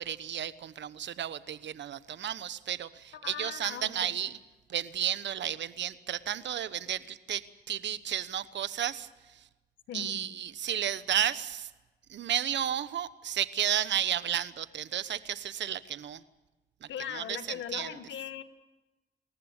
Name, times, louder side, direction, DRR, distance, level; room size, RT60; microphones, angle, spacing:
voice 1, 0.0-4.4 4.7-9.4 9.9-11.7 12.1-16.2 16.8-16.9 17.1-17.4 17.7-17.9, right 10 dB, 75° right, 15 dB, 1.1 m, -33 dB
voice 2, 3.2-4.1 9.9-10.3 16.9-18.4, left 9 dB, 85° left, 9 dB, 1.7 m, -39 dB
29.5 x 14.5 x 8.2 m, 1.1 s
cardioid pair, 60°, 19 cm